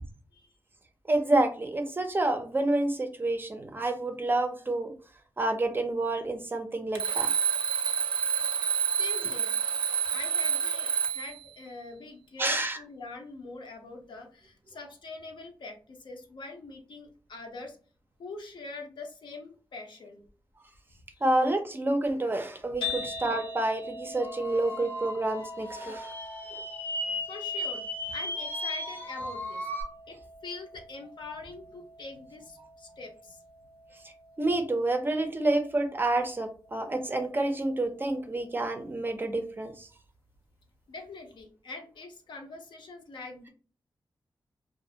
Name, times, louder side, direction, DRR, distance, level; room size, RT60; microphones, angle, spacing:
voice 1, 1.1-4.9 5.4-7.3 12.4-12.8 21.2-26.1 26.5-26.6 34.4-39.9, right 2 dB, 25° right, 6 dB, 0.4 m, -28 dB
Alarm, 6.9-11.4, right 7 dB, 80° right, 0.5 m, -28 dB
voice 2, 9.0-9.6 10.1-17.8 18.2-20.2 21.1-21.2 27.3-29.7 30.1-33.4 40.9-43.5, left 3 dB, 70° left, 3 dB, 0.6 m, -43 dB
sound 1, 22.8-39.0, left 3 dB, 85° left, 1.1 m, -44 dB
sound 2, 24.2-29.8, left 1 dB, 25° left, 0.6 m, -36 dB
2.4 x 2.4 x 2.7 m, 0.38 s
wide cardioid pair, 115°, 8 cm